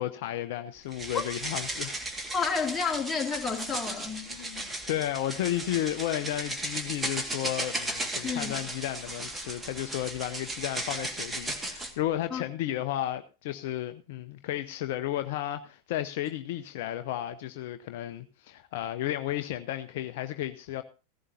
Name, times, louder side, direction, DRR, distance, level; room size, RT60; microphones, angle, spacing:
voice 1, 0.0-2.0 4.3-20.8, left 13 dB, 50° left, 0.7 m, -33 dB
sound 1, 0.9-11.9, right 1 dB, 10° right, 1.9 m, -36 dB
voice 2, 2.3-4.3 8.2-8.6 12.3-12.4, left 5 dB, 10° left, 2.7 m, -30 dB
16.5 x 15.0 x 2.7 m
figure-of-eight pair, 90°, 0 cm